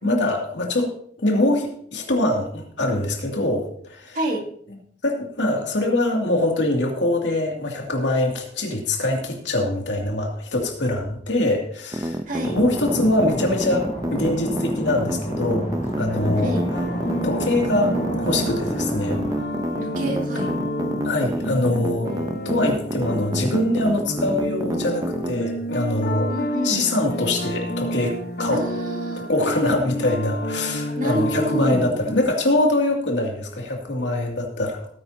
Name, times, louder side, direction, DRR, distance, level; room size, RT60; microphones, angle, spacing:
voice 1, 0.0-0.9 1.2-4.2 5.0-15.7 16.0-16.6 17.2-19.2 21.0-28.7 29.3-34.9, left 1 dB, 90° left, 1 dB, 2.5 m, -23 dB
sound 1, 11.9-25.3, right 1 dB, 20° right, 0.7 m, -28 dB
voice 2, 12.3-12.6 16.4-16.6 19.8-20.5 26.3-26.8 28.5-29.2 31.0-32.2, right 1 dB, 45° right, 1 dB, 2.3 m, -28 dB
sound 2, 12.4-19.4, equal, 40° left, 2.7 m, -31 dB
sound 3, 16.1-32.2, equal, 60° left, 1.1 m, -30 dB
18.0 x 9.4 x 2.8 m, 0.62 s
head